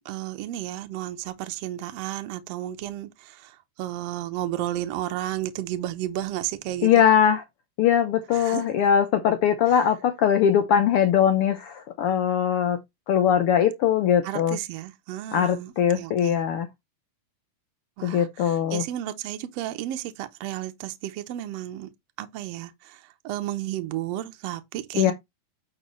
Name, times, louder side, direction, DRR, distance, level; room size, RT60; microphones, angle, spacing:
voice 1, 0.0-7.0 8.3-8.7 14.2-16.4 18.0-21.9 22.2-25.1, right 13 dB, 70° right, 1.6 m, -33 dB
voice 2, 6.8-7.4 7.8-12.8 13.1-14.6 15.3-16.7 18.0-18.8 24.9-25.1, left 9 dB, 80° left, 1.2 m, -21 dB
9.2 x 4.2 x 3.0 m
omnidirectional pair, 3.4 m